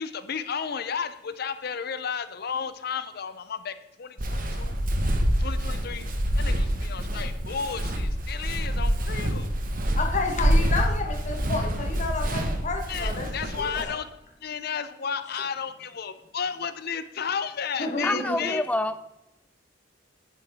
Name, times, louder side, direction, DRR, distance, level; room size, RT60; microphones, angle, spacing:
voice 1, 0.0-4.7 5.4-6.1 6.3-9.5 12.9-14.1 14.4-18.6, left 6 dB, 55° left, 12 dB, 0.6 m, -33 dB
Walk footsteps, 4.2-13.8, equal, 50° right, 1.3 m, -26 dB
voice 2, 10.0-13.3 13.6-14.0 17.8-18.5, left 3 dB, 40° left, 3 dB, 1.3 m, -30 dB
voice 3, 18.0-19.0, left 1 dB, 10° left, 11 dB, 0.5 m, -27 dB
10.0 x 8.4 x 3.5 m, 0.93 s
head